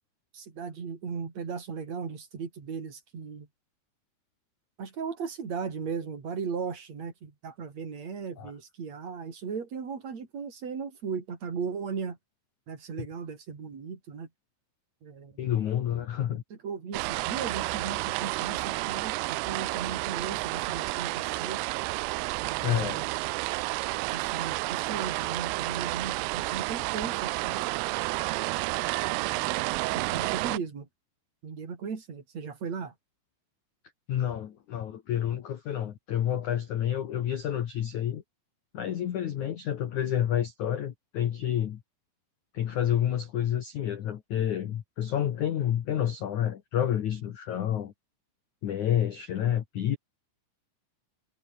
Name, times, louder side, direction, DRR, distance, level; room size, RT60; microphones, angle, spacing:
voice 1, 0.3-3.5 4.8-12.2 12.7-14.3 15.0-15.3 16.6-21.6 22.4-23.1 24.1-27.7 29.9-30.9 31.4-32.9, right 6 dB, 35° right, 4.6 m, -37 dB
voice 2, 15.4-16.4 22.6-23.1 34.1-38.2 38.7-41.8 42.5-47.9 48.6-50.0, left 10 dB, 75° left, 1.7 m, -29 dB
sound 1, 16.9-30.6, right 25 dB, 85° right, 3.0 m, -31 dB
omnidirectional pair, 5.8 m